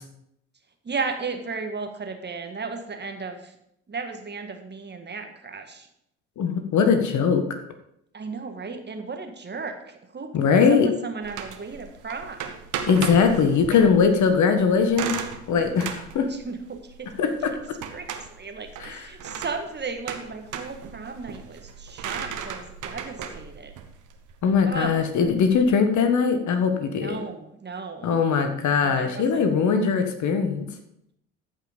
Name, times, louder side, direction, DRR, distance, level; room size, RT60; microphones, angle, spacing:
voice 1, 0.8-3.6 3.9-5.9 8.1-12.6 16.3-17.1 17.9-23.7 24.7-25.0 27.0-28.1 28.8-29.5, right 4 dB, 30° right, 5 dB, 1.7 m, -35 dB
voice 2, 6.4-7.4 10.3-10.9 12.8-15.2 15.5-16.3 17.2-17.5 18.8-19.1 24.4-27.2 28.0-30.7, left 6 dB, 55° left, 7 dB, 1.5 m, -21 dB
sound 1, 11.2-25.7, right 7 dB, 55° right, 1.4 m, -37 dB
14.0 x 5.5 x 5.3 m, 0.77 s
hypercardioid pair, 55°, 36 cm